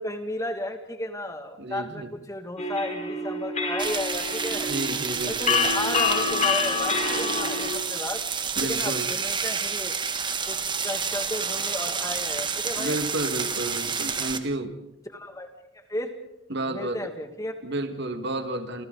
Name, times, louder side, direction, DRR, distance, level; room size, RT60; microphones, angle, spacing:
voice 1, 0.0-4.7 5.3-8.2 8.6-10.0 10.5-10.6 10.8-13.0 15.1-15.5 15.9-16.2 16.6-17.5, left 1 dB, 15° left, 6 dB, 2.2 m, -33 dB
voice 2, 1.6-2.1 4.5-5.7 8.6-9.1 12.8-14.7 16.5-17.0 17.6-18.9, right 2 dB, 55° right, 8 dB, 1.9 m, -31 dB
sound 1, 2.6-7.7, left 4 dB, 35° left, 4.4 m, -27 dB
sound 2, 3.8-14.4, right 6 dB, 25° right, 1.4 m, -29 dB
29.5 x 27.5 x 4.0 m, 0.85 s
head